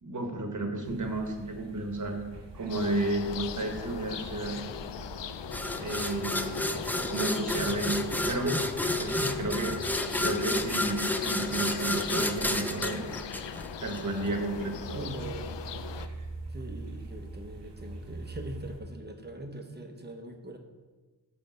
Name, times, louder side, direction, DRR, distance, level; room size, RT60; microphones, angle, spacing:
voice 1, 0.0-2.2 2.5-4.6 5.8-6.8 7.1-8.0 8.3-8.6 8.9-9.8 10.2-13.1 13.8-15.0, right 2 dB, 45° right, 3 dB, 1.2 m, -32 dB
sound 1, 0.8-18.8, right 2 dB, 75° right, 1.0 m, -45 dB
sound 2, 2.7-16.1, left 9 dB, 85° left, 0.5 m, -39 dB
sound 3, 5.5-14.0, left 1 dB, 5° left, 0.3 m, -31 dB
voice 2, 14.9-15.6 16.5-20.6, right 1 dB, 25° right, 4 dB, 0.9 m, -42 dB
9.1 x 3.4 x 6.7 m, 1.3 s
wide cardioid pair, 120°, 42 cm